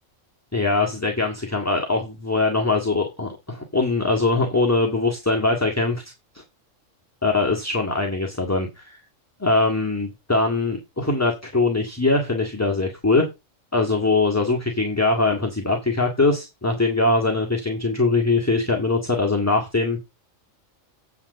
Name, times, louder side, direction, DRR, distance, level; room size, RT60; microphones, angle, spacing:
voice 1, 0.5-6.0 6.3-6.4 7.2-9.0 9.4-13.3 13.7-20.0, left 3 dB, 10° left, 1.7 m, -22 dB
8.9 x 4.0 x 6.7 m
omnidirectional pair, 1.3 m